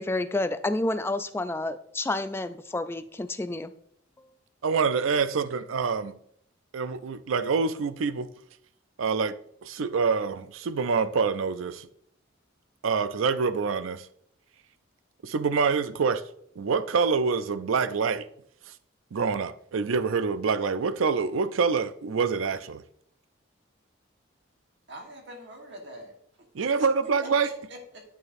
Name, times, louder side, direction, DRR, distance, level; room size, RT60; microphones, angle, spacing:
voice 1, 0.0-3.7 4.2-4.3, left 2 dB, 10° left, 0.3 m, -29 dB
voice 2, 4.6-6.1 6.7-8.3 9.0-9.3 9.6-11.9 12.8-14.1 15.2-16.2 16.6-18.2 19.1-22.8 26.5-27.5, right 5 dB, 80° right, 0.4 m, -26 dB
voice 3, 24.9-26.1 26.6-28.0, equal, 60° right, 1.4 m, -43 dB
9.0 x 6.5 x 2.6 m
head